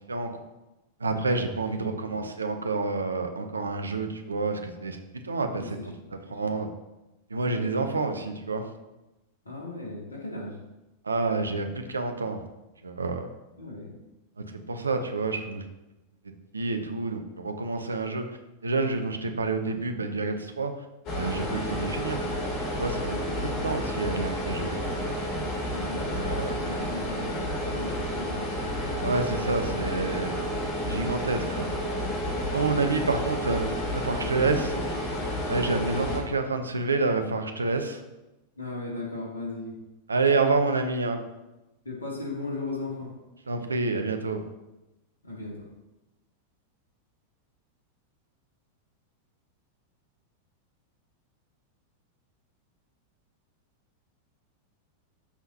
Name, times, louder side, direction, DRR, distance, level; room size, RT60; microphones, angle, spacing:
voice 1, 1.0-5.0 5.2-5.8 6.3-6.7 7.3-8.7 11.0-12.4 12.8-13.3 14.7-15.6 16.5-18.3 18.6-20.7 21.1-22.2 22.8-24.7 26.1-26.7 29.0-30.3 30.8-31.7 32.5-33.7 33.9-34.7 35.5-38.0 40.1-41.2 43.5-44.4, right 3 dB, 75° right, 7 dB, 0.8 m, -28 dB
voice 2, 1.7-2.1 5.6-6.4 9.4-10.6 13.6-13.9 25.7-26.2 26.6-28.5 32.7-33.1 33.4-33.5 34.1-34.9 36.0-36.1 38.6-39.7 41.8-43.2 45.2-45.7, left 2 dB, 75° left, -3 dB, 2.5 m, -37 dB
sound 1, 21.1-36.2, equal, 40° left, 2.9 m, -30 dB
13.0 x 5.8 x 2.9 m, 1.0 s
figure-of-eight pair, 90°, 0 cm